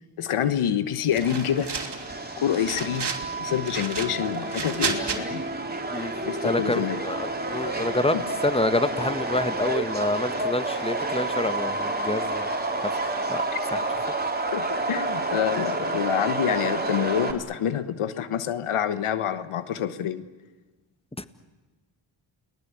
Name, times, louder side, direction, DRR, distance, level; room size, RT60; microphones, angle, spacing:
voice 1, 0.2-1.7 2.4-3.1 3.4-5.4 6.2-7.0 8.1-8.2 13.5-13.6 14.5-20.2, left 9 dB, 85° left, 13 dB, 1.2 m, -27 dB
sound 1, 1.1-2.1 2.5-3.3 3.6-5.2, right 5 dB, 55° right, 2.9 m, -32 dB
Subway metro underground, 1.2-17.3, right 2 dB, 20° right, 3.6 m, -29 dB
voice 2, 6.4-12.5 13.3-13.4 13.7-13.8 21.2-21.3, left 2 dB, 10° left, 12 dB, 1.6 m, -27 dB
29.5 x 19.5 x 8.4 m, 1.2 s
cardioid pair, 50°, 49 cm